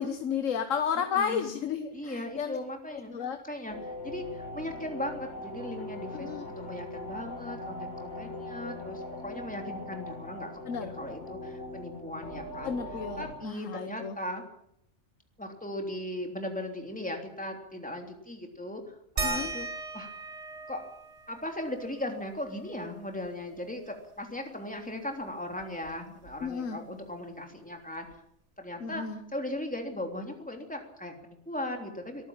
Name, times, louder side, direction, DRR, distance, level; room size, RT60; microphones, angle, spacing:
voice 1, 0.0-2.6 3.1-3.4 6.2-6.4 10.7-10.9 12.6-14.1 19.2-19.5 26.4-26.8 28.8-29.2, left 7 dB, 80° left, 8 dB, 1.6 m, -32 dB
voice 2, 0.9-1.6 1.9-3.1 3.4-10.5 10.8-12.8 13.2-14.4 15.4-19.7 19.9-20.1 20.7-20.8 21.3-28.1 28.6-32.3, left 1 dB, 5° left, 3 dB, 3.3 m, -38 dB
sound 1, 3.7-13.3, left 1 dB, 60° left, 4.7 m, -40 dB
sound 2, 19.2-24.3 24.7-24.8 25.1-26.8 28.1-28.2 28.9-29.0, right 3 dB, 65° right, 2.0 m, -40 dB
22.5 x 14.0 x 8.8 m, 0.72 s
omnidirectional pair, 1.3 m